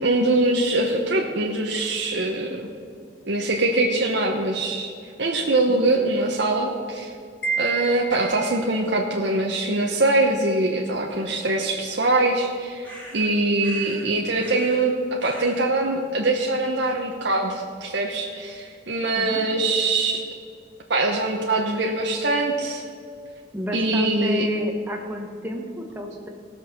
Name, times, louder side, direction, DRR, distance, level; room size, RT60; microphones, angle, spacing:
voice 1, 0.0-2.7 3.3-4.9 5.2-7.1 7.6-20.2 20.9-22.8 23.7-24.5, right 2 dB, 60° right, -1 dB, 1.0 m, -23 dB
Wind chime, 7.4-8.8, right 6 dB, 55° left, 1.2 m, -29 dB
sound 1, 12.8-13.3 13.6-14.1 14.4-14.9 15.2-15.7, equal, 10° left, 2.7 m, -42 dB
voice 2, 23.5-26.3, left 1 dB, 10° right, 2 dB, 1.2 m, -30 dB
16.5 x 6.4 x 6.5 m, 2.4 s
head